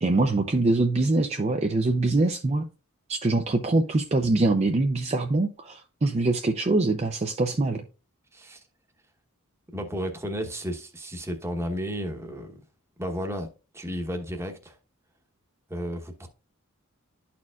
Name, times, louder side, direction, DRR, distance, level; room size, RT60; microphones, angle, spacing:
voice 1, 0.0-2.7 3.1-7.8, right 2 dB, 30° right, 0.5 m, -24 dB
voice 2, 8.3-8.6 9.7-12.6 13.0-14.8 15.7-16.3, equal, 15° right, 1.0 m, -33 dB
12.0 x 4.3 x 2.4 m
head